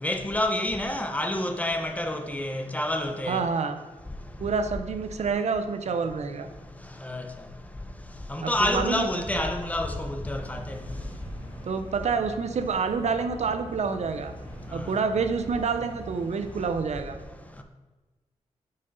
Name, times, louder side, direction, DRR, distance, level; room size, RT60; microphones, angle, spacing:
voice 1, 0.0-3.4 7.0-7.2 8.3-10.8 14.7-14.9, left 1 dB, 10° left, 0.7 m, -28 dB
voice 2, 3.3-3.8 4.4-6.5 8.4-9.4 11.6-14.3 14.7-17.2, right 5 dB, 65° right, 0.6 m, -28 dB
sound 1, 5.8-16.0, left 2 dB, 35° right, 2.2 m, -50 dB
sound 2, 10.4-16.7, right 1 dB, 45° left, 2.0 m, -43 dB
6.4 x 5.8 x 4.0 m
wide cardioid pair, 110°, 12 cm